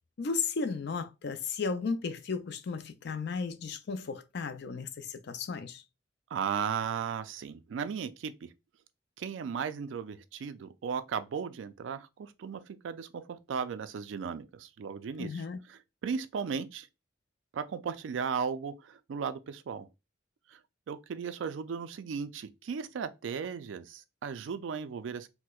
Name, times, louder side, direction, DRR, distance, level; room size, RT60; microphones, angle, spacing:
voice 1, 0.2-5.8 15.2-15.6, left 5 dB, 60° left, 0.4 m, -34 dB
voice 2, 6.3-8.5 9.2-16.9 17.5-19.9 20.5-20.6 20.9-25.3, right 6 dB, 80° right, 0.4 m, -36 dB
4.3 x 2.1 x 2.3 m
head